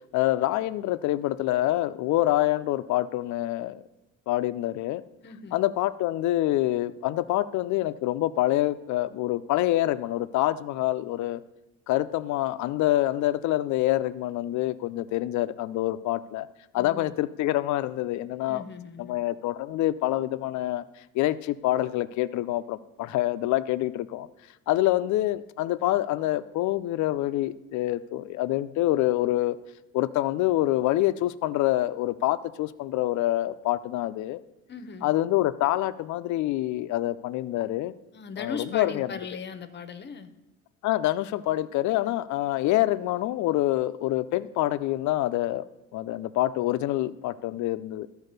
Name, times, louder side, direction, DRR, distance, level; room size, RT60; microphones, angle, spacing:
voice 1, 0.1-3.8 4.3-5.0 5.5-11.4 11.9-16.5 16.7-18.6 19.0-20.8 21.1-24.3 24.7-29.6 29.9-34.4 35.0-37.9 38.4-39.1 40.8-45.6 45.9-48.1, left 15 dB, 70° left, 14 dB, 0.5 m, -26 dB
voice 2, 5.2-5.6 16.7-17.1 18.5-19.2 34.7-35.1 38.1-40.3, left 5 dB, 35° left, 11 dB, 0.8 m, -38 dB
12.5 x 4.8 x 6.6 m, 0.95 s
cardioid pair, 110°, 30 cm